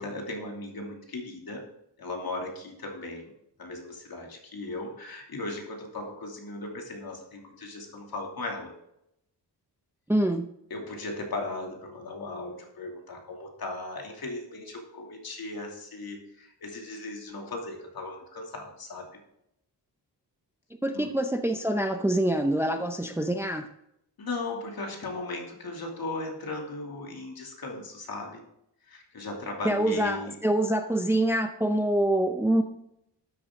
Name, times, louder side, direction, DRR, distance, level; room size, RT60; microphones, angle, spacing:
voice 1, 0.0-1.7 2.0-3.3 3.6-8.7 10.7-19.2 20.9-21.1 24.2-28.4 28.9-30.4, left 2 dB, 55° left, 1 dB, 2.8 m, -37 dB
voice 2, 10.1-10.5 20.8-23.7 29.6-32.6, right 1 dB, 5° right, 6 dB, 0.6 m, -25 dB
12.5 x 8.5 x 3.8 m, 0.78 s
wide cardioid pair, 135°, 42 cm